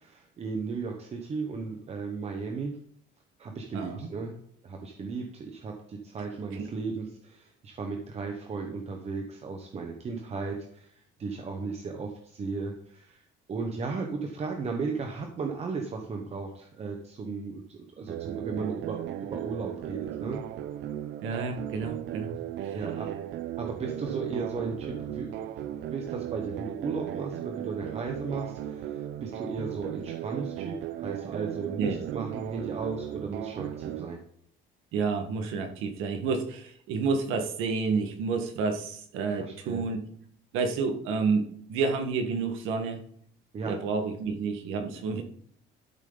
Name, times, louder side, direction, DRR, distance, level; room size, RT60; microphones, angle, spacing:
voice 1, 0.0-2.8 3.4-20.4 22.7-23.1 23.6-34.2 39.4-39.8 43.5-43.8, right 4 dB, 30° right, 2 dB, 1.1 m, -35 dB
voice 2, 3.7-4.1 6.6-6.7 21.2-22.4 22.6-22.8 31.8-32.0 34.9-40.0 40.5-43.0 43.7-45.2, right 4 dB, 80° right, 5 dB, 1.7 m, -30 dB
sound 1, 18.1-34.1, right 12 dB, 65° right, 0.7 m, -36 dB
12.5 x 7.3 x 4.0 m, 0.63 s
cardioid pair, 155°, 20 cm